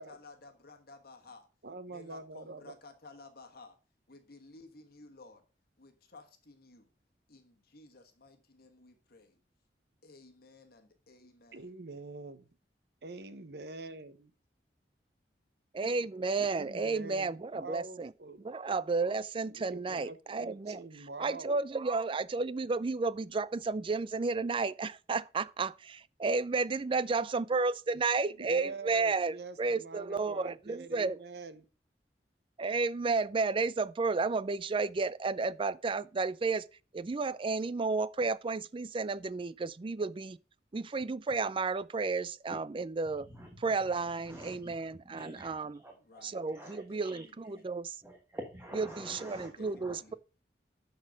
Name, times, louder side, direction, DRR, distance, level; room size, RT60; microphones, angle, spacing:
voice 1, 0.0-1.5 1.9-3.7 4.1-5.4 5.8-6.9 7.3-9.4 10.0-11.7 45.9-47.6 49.3-50.2, left 3 dB, 60° left, 1.3 m, -55 dB
voice 2, 1.6-2.7 11.5-12.4 13.0-14.3 16.4-18.5 19.5-21.6 28.4-31.7, right 3 dB, 65° right, 0.9 m, -45 dB
voice 3, 15.7-18.1 18.4-31.2 32.6-36.6 36.9-40.4 40.7-43.3 43.6-45.8 46.2-48.0 48.7-50.1, right 4 dB, 30° right, 0.4 m, -32 dB
voice 4, 43.3-43.6 44.2-44.7 45.0-46.2 46.5-47.2 48.0-50.0, equal, 15° right, 1.3 m, -47 dB
11.5 x 4.3 x 5.0 m
head